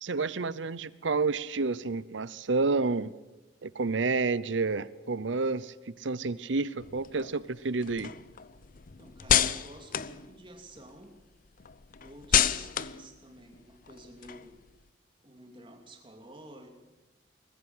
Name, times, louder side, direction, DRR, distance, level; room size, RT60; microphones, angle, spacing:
voice 1, 0.0-3.1 3.6-8.1, right 3 dB, 90° right, 18 dB, 0.8 m, -30 dB
sound 1, 6.8-11.0 11.3-14.8, left 9 dB, 50° left, 0.6 m, -31 dB
voice 2, 9.0-11.2 12.0-14.6 15.2-16.7, right 1 dB, 30° right, 3 dB, 2.9 m, -51 dB
21.5 x 15.0 x 8.1 m, 1.1 s
head